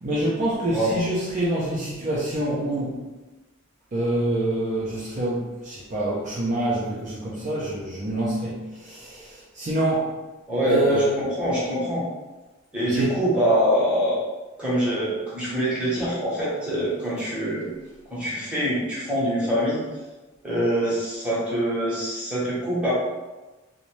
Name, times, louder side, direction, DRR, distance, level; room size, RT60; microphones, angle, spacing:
voice 1, 0.0-3.0 3.9-10.1 10.6-11.1 12.9-13.2, right 1 dB, 35° right, -6 dB, 0.4 m, -26 dB
voice 2, 10.5-12.0 12.7-14.2 14.6-17.7 18.1-19.8 20.4-22.9, equal, 5° right, -9 dB, 0.8 m, -24 dB
2.5 x 2.1 x 3.0 m, 1.1 s
head